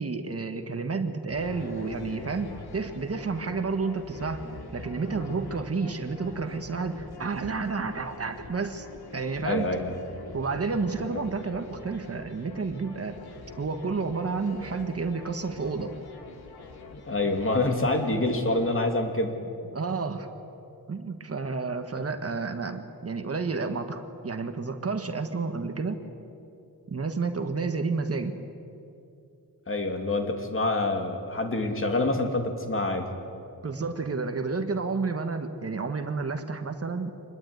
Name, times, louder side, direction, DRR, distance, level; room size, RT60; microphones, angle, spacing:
voice 1, 0.0-4.4 4.7-8.9 9.1-9.7 10.3-13.2 13.6-15.9 19.7-20.3 20.9-26.0 26.9-28.4 33.6-37.1, right 4 dB, 40° right, 7 dB, 1.5 m, -30 dB
sound 1, 1.3-18.7, left 3 dB, 85° left, 2.8 m, -44 dB
voice 2, 9.4-10.0 11.1-11.2 16.9-19.3 29.7-33.1, left 2 dB, 35° left, 4 dB, 2.7 m, -26 dB
25.5 x 20.5 x 9.6 m, 2.7 s
wide cardioid pair, 155°, 38 cm